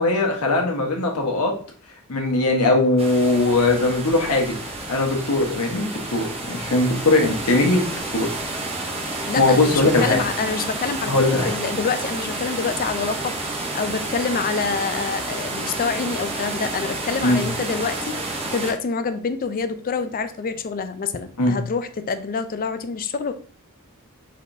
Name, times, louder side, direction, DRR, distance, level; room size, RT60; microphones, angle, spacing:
voice 1, 0.0-1.5 2.1-4.5 4.9-8.3 9.4-10.2 11.1-11.5 17.2-17.4 21.4-21.6, left 2 dB, 75° left, 1 dB, 1.2 m, -20 dB
sound 1, 3.0-18.7, right 2 dB, 25° right, 0.9 m, -30 dB
voice 2, 9.3-23.3, left 5 dB, 40° left, 11 dB, 0.4 m, -27 dB
4.9 x 4.2 x 2.6 m, 0.43 s
head